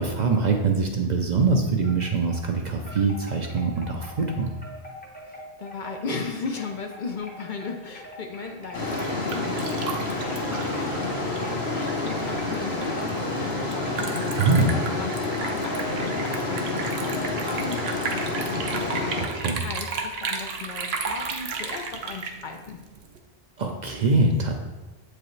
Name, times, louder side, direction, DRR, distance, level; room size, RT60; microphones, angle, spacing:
voice 1, 0.0-4.5 14.4-14.7 19.2-19.6 23.6-24.6, right 4 dB, 50° right, 3 dB, 0.6 m, -23 dB
Wind chime, 1.8-2.5 2.9-17.4, left 1 dB, 10° left, 0.8 m, -44 dB
voice 2, 5.6-19.3 19.6-22.8, left 4 dB, 55° left, 4 dB, 0.6 m, -37 dB
Liquid, 8.6-23.2, right 4 dB, 70° right, 0.9 m, -34 dB
sound 1, 8.7-19.3, left 2 dB, 70° left, 1.4 m, -29 dB
7.6 x 4.9 x 3.1 m, 1.2 s
omnidirectional pair, 1.1 m